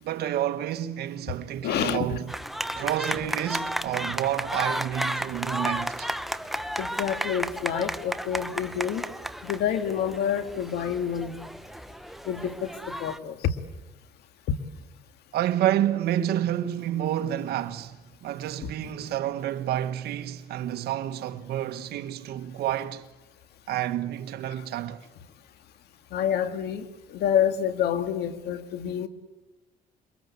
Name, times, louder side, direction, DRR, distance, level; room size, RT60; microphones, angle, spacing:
voice 1, 0.0-2.2 2.7-6.1 15.3-18.0 18.2-23.1 23.7-25.1, right 12 dB, 70° right, 1.6 m, -29 dB
voice 2, 1.6-2.1 6.8-9.0 9.4-11.4 12.3-13.6 14.5-14.6 18.6-18.9 26.1-29.1, left 9 dB, 75° left, 2.1 m, -28 dB
sound 1, 2.3-13.2, equal, ahead, 0.9 m, -33 dB
28.0 x 23.0 x 8.5 m
cardioid pair, 110°, 17 cm